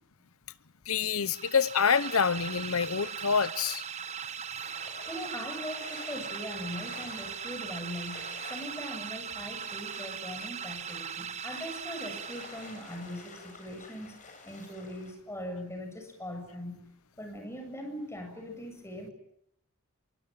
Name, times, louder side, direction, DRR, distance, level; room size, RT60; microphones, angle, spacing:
voice 1, 0.9-3.8, left 6 dB, 65° left, 1.0 m, -27 dB
sound 1, 1.2-13.1, right 7 dB, 30° right, 1.0 m, -39 dB
sound 2, 2.7-15.1, left 3 dB, 35° left, 7.7 m, -51 dB
voice 2, 4.8-14.1 14.4-16.8 17.2-19.1, equal, 10° left, 7.5 m, -41 dB
25.0 x 23.5 x 9.0 m
head